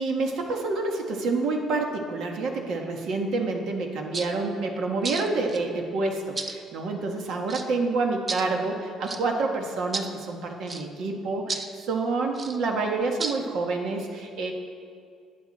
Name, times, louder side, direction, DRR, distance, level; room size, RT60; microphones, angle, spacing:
voice 1, 0.0-14.5, right 3 dB, 60° right, 2 dB, 1.7 m, -28 dB
sound 1, 4.1-4.3 5.0-5.6 6.4-6.6 7.5-7.7 8.3-8.4 9.0-9.2 9.9-10.1 10.7-10.8 11.5-11.7 12.3-12.6 13.2-13.4, right 3 dB, 25° right, 0.6 m, -32 dB
19.5 x 11.0 x 4.3 m, 2.2 s
cardioid pair, 155°, 0 cm